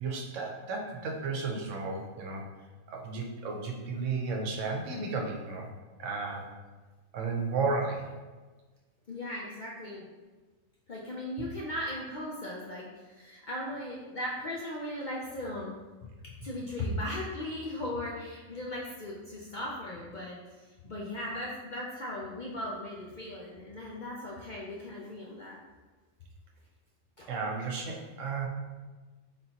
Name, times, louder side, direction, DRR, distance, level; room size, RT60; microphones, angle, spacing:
voice 1, 0.0-2.4 2.9-5.7 6.0-6.5 7.1-8.1 27.3-28.5, right 4 dB, 70° right, 1 dB, 1.0 m, -33 dB
voice 2, 9.1-10.0 10.9-15.7 16.2-20.4 20.8-25.6 27.2-27.3, left 1 dB, 60° left, -4 dB, 0.5 m, -37 dB
4.0 x 3.7 x 2.8 m, 1.3 s
omnidirectional pair, 1.4 m